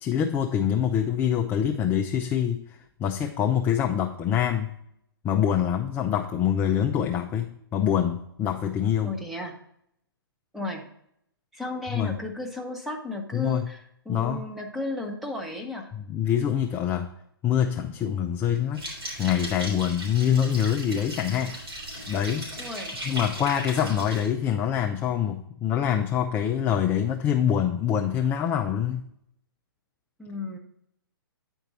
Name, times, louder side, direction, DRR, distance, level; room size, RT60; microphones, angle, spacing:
voice 1, 0.0-4.8 5.2-9.2 11.9-12.2 13.3-13.7 14.1-14.5 15.9-17.1 17.4-18.8 19.2-21.6 22.1-22.5 23.0-29.1, left 9 dB, 15° left, 4 dB, 0.4 m, -25 dB
voice 2, 9.0-9.6 10.5-10.8 11.5-15.9 22.6-23.0 30.2-30.6, left 2 dB, ahead, 0 dB, 1.0 m, -34 dB
sound 1, 18.7-24.3, right 1 dB, 75° right, 3.5 m, -37 dB
9.4 x 4.5 x 4.0 m, 0.73 s
hypercardioid pair, 135°, 13 cm